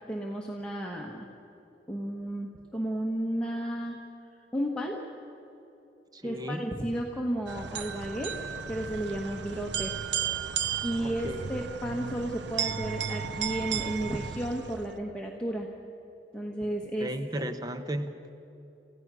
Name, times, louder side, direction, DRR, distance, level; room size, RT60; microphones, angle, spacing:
voice 1, 0.1-1.3 1.9-4.0 4.5-5.0 6.2-8.4 8.7-10.0 10.8-15.7 16.3-17.1, right 1 dB, 5° left, -1 dB, 1.2 m, -33 dB
voice 2, 6.1-6.7 11.0-11.5 17.0-18.3, equal, 20° right, 9 dB, 0.9 m, -35 dB
sound 1, 7.5-15.0, right 7 dB, 85° right, 0.8 m, -34 dB
27.5 x 15.5 x 6.2 m, 3.0 s
head